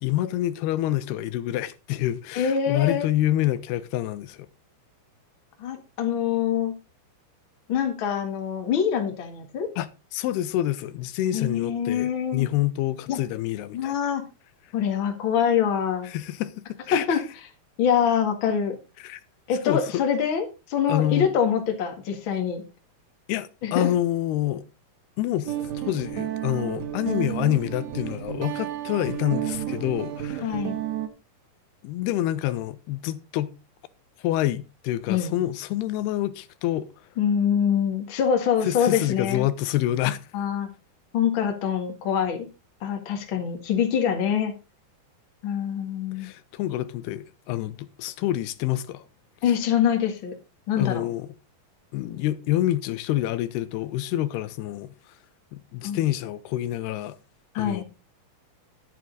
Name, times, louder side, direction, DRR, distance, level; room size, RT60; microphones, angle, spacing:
voice 1, 0.0-4.5 9.8-14.0 16.0-16.5 16.9-17.2 19.0-19.2 19.7-19.8 20.9-21.3 23.3-24.6 25.2-30.5 31.8-33.5 34.2-36.9 38.6-40.2 46.2-49.0 50.8-51.3 51.9-54.9 55.5-57.2 57.6-57.8, left 14 dB, 90° left, 2.8 m, -27 dB
voice 2, 2.3-3.1 5.6-6.7 7.7-9.7 11.3-12.5 13.1-13.2 13.7-14.2 14.7-16.1 16.9-17.2 17.8-18.8 19.5-22.6 23.6-23.9 30.4-30.8 35.1-35.3 37.2-39.5 40.3-40.7 41.1-42.5 42.8-44.5 45.4-46.3 49.4-50.3 50.7-51.1 55.8-56.0 57.5-57.8, left 8 dB, 40° left, 1.9 m, -24 dB
Guitar, 25.5-31.1, right 11 dB, 65° right, 1.9 m, -31 dB
11.5 x 9.1 x 3.9 m
omnidirectional pair, 4.5 m